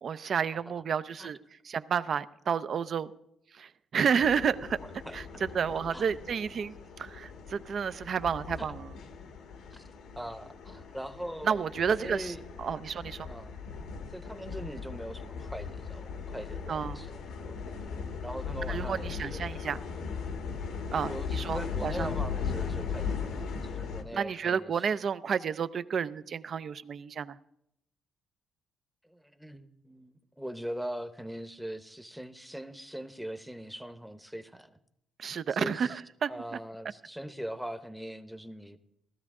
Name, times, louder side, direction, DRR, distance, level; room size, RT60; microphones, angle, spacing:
voice 1, 0.0-1.4 1.6-3.1 3.5-4.8 5.1-8.9 11.4-13.3 16.7-17.0 18.7-19.8 20.9-22.1 24.1-27.4 35.2-36.6, right 7 dB, 55° right, 14 dB, 0.5 m, -31 dB
sound 1, 4.2-24.0, left 5 dB, 85° left, 1.3 m, -38 dB
voice 2, 10.1-11.6 12.0-12.4 13.3-13.6 14.1-17.5 17.9-19.6 21.0-24.9 29.0-34.8 35.5-36.0 36.3-38.8, equal, ahead, 10 dB, 0.8 m, -41 dB
16.0 x 13.0 x 3.6 m, 0.79 s
cardioid pair, 90°, 0 cm